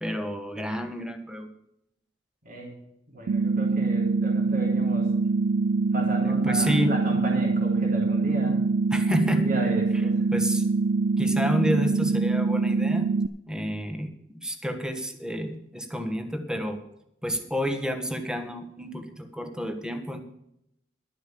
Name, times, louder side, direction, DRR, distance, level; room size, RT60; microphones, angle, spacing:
voice 1, 0.0-1.5 6.2-6.9 8.9-9.5 10.3-10.6 11.2-13.2 13.5-16.8 17.2-20.2, equal, 5° right, 7 dB, 1.3 m, -29 dB
voice 2, 3.1-5.1 5.9-8.6 9.4-10.2, right 2 dB, 50° right, -1 dB, 3.4 m, -34 dB
sound 1, 3.3-13.3, right 3 dB, 80° right, 0.4 m, -24 dB
12.0 x 7.2 x 7.6 m, 0.79 s
head